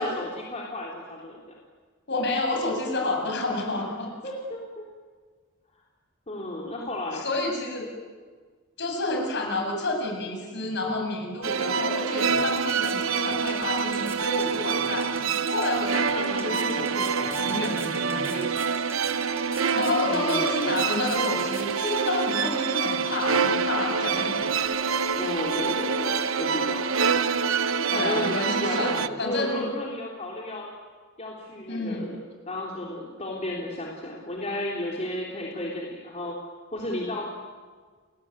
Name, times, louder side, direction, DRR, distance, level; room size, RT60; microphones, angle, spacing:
voice 1, 0.0-1.6 4.2-4.9 6.3-7.2 16.2-17.0 20.0-20.7 25.1-26.9 27.9-30.7 31.2-32.2 32.5-36.4 36.7-37.3, left 1 dB, 30° left, -2 dB, 3.6 m, -33 dB
voice 2, 2.1-4.1 7.1-7.9 8.8-18.5 19.7-24.8 27.9-29.7 31.7-32.1, left 2 dB, 60° left, 2 dB, 7.7 m, -30 dB
sound 1, 11.4-29.1, right 5 dB, 75° right, 1.0 m, -26 dB
sound 2, 11.8-22.5, right 2 dB, 10° right, 4.2 m, -45 dB
30.0 x 20.5 x 9.4 m, 1.5 s
head